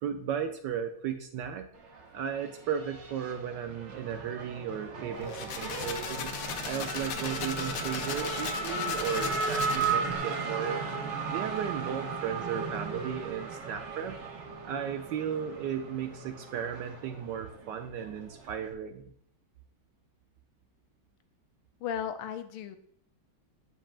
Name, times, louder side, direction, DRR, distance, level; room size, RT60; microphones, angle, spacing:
voice 1, 0.0-1.7 2.1-6.4 6.6-10.9 11.3-14.2 14.6-19.0, right 8 dB, 75° right, 6 dB, 1.0 m, -35 dB
Race car auto racing / Accelerating revving vroom, 1.7-18.7, right 4 dB, 50° right, 0.8 m, -36 dB
sound 1, 5.2-10.2, left 7 dB, 70° left, 1.1 m, -37 dB
voice 2, 21.8-22.8, left 8 dB, 90° left, 8 dB, 1.6 m, -35 dB
8.6 x 5.4 x 2.4 m, 0.62 s
omnidirectional pair, 2.3 m